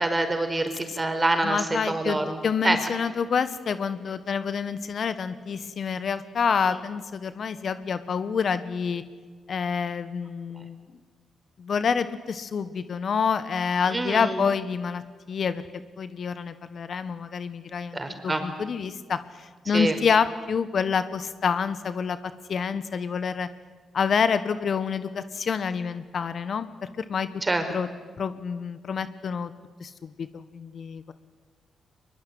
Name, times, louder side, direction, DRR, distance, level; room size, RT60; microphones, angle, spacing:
voice 1, 0.0-2.4 2.6-2.8 13.9-14.4 17.9-18.4 19.7-20.0 27.4-27.6, right 2 dB, 30° right, 6 dB, 5.1 m, -26 dB
voice 2, 1.4-9.0 9.5-10.8 11.6-15.0 15.3-15.6 16.0-18.0 18.2-22.2 22.5-23.5 23.9-26.7 27.0-27.3 27.7-27.9 28.2-29.5 29.8-31.1, left 6 dB, 60° left, 13 dB, 1.4 m, -27 dB
23.0 x 22.5 x 9.5 m, 1.5 s
hypercardioid pair, 45°, 0 cm